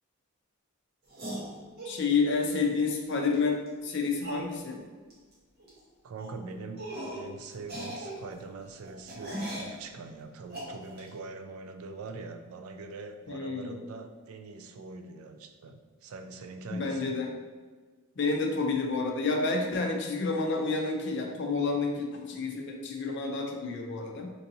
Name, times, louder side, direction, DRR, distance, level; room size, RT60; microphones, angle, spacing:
sound 1, 1.1-2.0 3.3-3.4 3.7-3.8 4.2-4.5 5.1-5.3 5.6-5.8 6.2-6.3 6.8-7.3 7.6-9.8 10.5-11.1, right 1 dB, 45° right, 1.0 m, -39 dB
voice 1, 1.8-4.8 13.3-13.8 16.7-17.3 18.2-24.3, left 4 dB, 50° left, 2 dB, 0.5 m, -29 dB
voice 2, 6.0-6.9 7.1-17.2, right 3 dB, 75° right, 6 dB, 0.4 m, -43 dB
4.5 x 2.7 x 2.7 m, 1.4 s
head